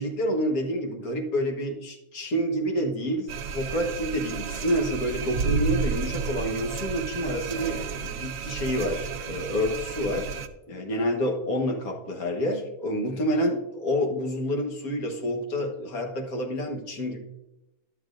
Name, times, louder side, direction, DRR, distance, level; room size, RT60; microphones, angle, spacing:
voice 1, 0.0-10.3 10.7-17.2, equal, 65° left, 1 dB, 1.7 m, -28 dB
sound 1, 3.3-10.5, right 5 dB, 80° right, 1.1 m, -31 dB
12.0 x 7.4 x 2.5 m, 0.95 s
omnidirectional pair, 1.6 m